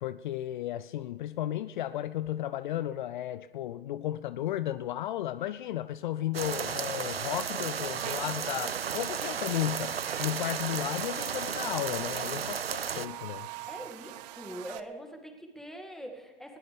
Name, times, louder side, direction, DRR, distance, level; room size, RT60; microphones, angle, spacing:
voice 1, 0.0-13.5, left 12 dB, 55° left, 14 dB, 0.5 m, -34 dB
sound 1, 6.3-13.1, right 7 dB, 85° right, 0.6 m, -34 dB
Buzz, 8.0-14.8, right 16 dB, 45° right, 0.9 m, -43 dB
voice 2, 13.7-16.6, right 1 dB, ahead, 3 dB, 2.1 m, -43 dB
20.5 x 18.0 x 3.5 m, 1.3 s
figure-of-eight pair, 100°, 29 cm